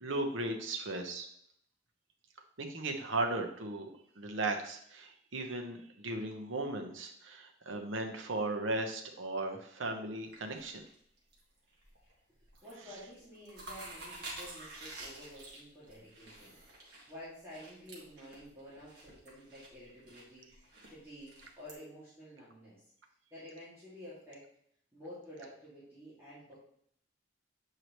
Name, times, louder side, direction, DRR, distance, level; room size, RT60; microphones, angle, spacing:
voice 1, 0.0-1.3 2.6-3.9 4.2-10.8, right 2 dB, 80° right, 4 dB, 1.0 m, -36 dB
sound 1, 10.2-11.4 11.7-12.1 12.4-12.8 13.1-21.7, right 2 dB, 55° right, 1.9 m, -49 dB
voice 2, 12.6-20.5 20.9-22.8 23.3-24.4 24.9-26.5, equal, 15° right, -11 dB, 2.3 m, -51 dB
7.9 x 4.8 x 3.1 m, 0.66 s
head